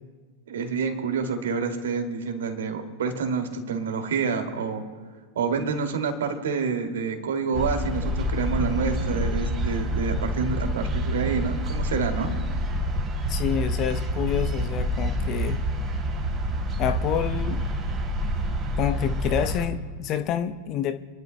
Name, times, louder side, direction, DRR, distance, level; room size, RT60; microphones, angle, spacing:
voice 1, 0.5-4.8 5.3-12.3, right 5 dB, 60° right, 4 dB, 2.4 m, -28 dB
sound 1, 7.5-19.7, equal, 20° right, 2.9 m, -27 dB
voice 2, 13.3-15.6 16.8-17.7 18.8-20.9, left 9 dB, 35° left, 9 dB, 0.7 m, -28 dB
28.5 x 12.0 x 2.2 m, 1.5 s
figure-of-eight pair, 90°, 0 cm